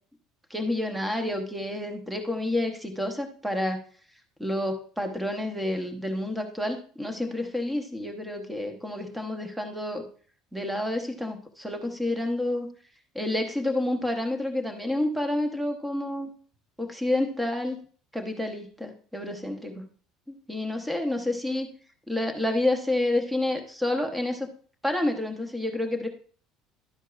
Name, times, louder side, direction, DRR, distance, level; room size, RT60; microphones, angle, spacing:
voice 1, 0.5-3.8 4.4-10.0 10.5-12.7 13.1-16.3 16.8-17.8 18.1-19.8 20.5-21.7 22.1-24.5 24.8-26.1, left 1 dB, 5° right, 6 dB, 0.9 m, -29 dB
11.0 x 8.1 x 2.4 m, 0.43 s
cardioid pair, 175°, 0 cm